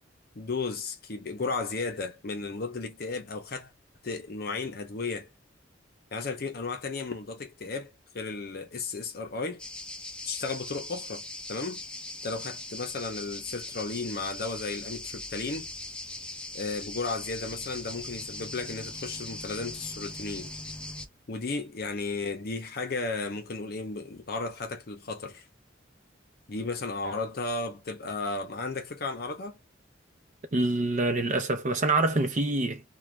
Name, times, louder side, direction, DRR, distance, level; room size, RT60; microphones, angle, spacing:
voice 1, 0.4-3.7 4.0-5.3 6.1-9.6 10.2-11.8 12.2-15.7 16.5-20.5 21.3-25.4 26.5-29.6, left 3 dB, 55° left, 0.6 m, -34 dB
sound 1, 9.6-21.1, left 2 dB, 5° left, 0.3 m, -40 dB
voice 2, 30.5-32.8, right 2 dB, 40° right, 0.6 m, -26 dB
2.5 x 2.3 x 3.1 m
head